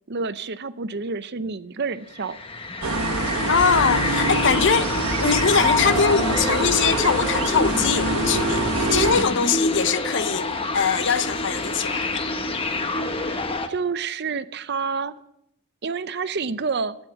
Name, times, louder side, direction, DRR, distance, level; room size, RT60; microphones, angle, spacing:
voice 1, 0.1-2.4 13.2-13.4 13.7-15.2 15.8-17.0, right 4 dB, 50° right, 0.6 m, -28 dB
sound 1, 2.1-13.7, left 2 dB, 25° left, 1.0 m, -27 dB
sound 2, 2.8-9.2, right 2 dB, 75° right, 1.4 m, -25 dB
voice 2, 3.5-4.9 5.2-10.5 10.7-12.2, left 6 dB, 55° left, 0.7 m, -22 dB
12.5 x 8.9 x 8.1 m
head